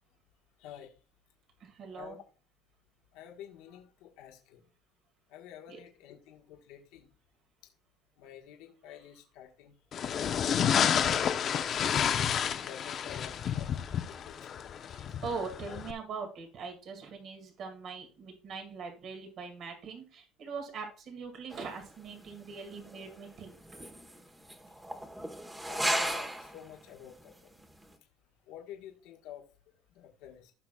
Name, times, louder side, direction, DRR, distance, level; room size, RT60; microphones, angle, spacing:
voice 1, 0.6-0.9 1.9-2.2 3.1-4.6 5.3-7.1 8.2-10.2 10.6-11.7 12.6-13.7 14.1-14.5 25.7-27.5 28.5-30.5, left 9 dB, 85° left, 1 dB, 1.4 m, -50 dB
voice 2, 1.6-2.2 5.7-5.8 14.9-23.6, right 5 dB, 55° right, 4 dB, 2.2 m, -42 dB
sound 1, 9.9-15.9, left 8 dB, 50° left, 0.7 m, -30 dB
sound 2, 21.5-26.8 27.2-27.3 27.6-27.8, right 1 dB, 10° right, 1.2 m, -36 dB
16.0 x 5.9 x 2.3 m, 0.36 s
cardioid pair, 105°, 0 cm